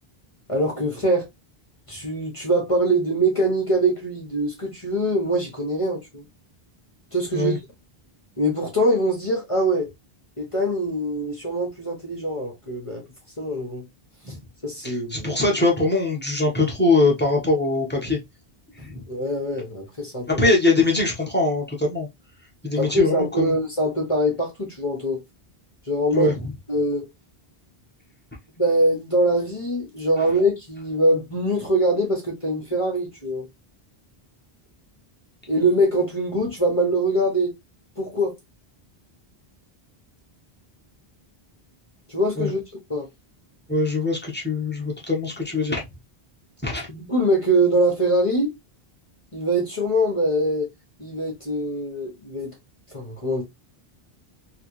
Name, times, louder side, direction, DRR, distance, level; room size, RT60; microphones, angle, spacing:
voice 1, 0.5-1.3 1.9-6.2 7.1-7.6 8.4-9.9 10.4-13.0 13.4-13.8 14.3-14.4 14.6-15.3 19.1-20.3 22.8-25.2 25.8-26.3 26.7-27.0 28.6-33.5 35.5-37.5 38.0-38.4 42.1-42.6 42.9-43.1 46.9-48.5 49.3-50.7 51.0-52.5 52.9-53.4, right 1 dB, 35° left, 1.1 m, -23 dB
voice 2, 14.8-18.2 18.8-19.0 20.3-22.1 22.6-23.5 26.1-26.4 42.4-42.5 43.7-45.8 46.6-46.9, left 2 dB, 10° left, 1.2 m, -22 dB
3.2 x 2.9 x 3.1 m
omnidirectional pair, 1.0 m